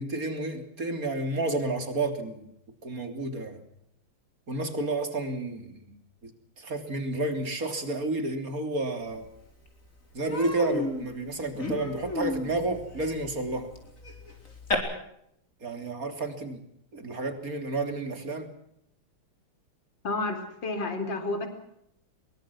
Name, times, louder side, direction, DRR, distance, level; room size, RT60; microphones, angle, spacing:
voice 1, 0.0-2.5 2.8-3.6 4.5-6.0 6.6-9.3 10.1-13.7 15.6-16.6 16.9-18.5, right 2 dB, 40° right, 7 dB, 3.8 m, -31 dB
Human voice, 9.2-9.3 9.7-9.9 10.2-14.7, left 2 dB, 35° left, 4.9 m, -34 dB
voice 2, 20.0-21.5, left 2 dB, 55° left, 7 dB, 4.6 m, -30 dB
24.5 x 23.0 x 6.3 m, 0.75 s
omnidirectional pair, 2.3 m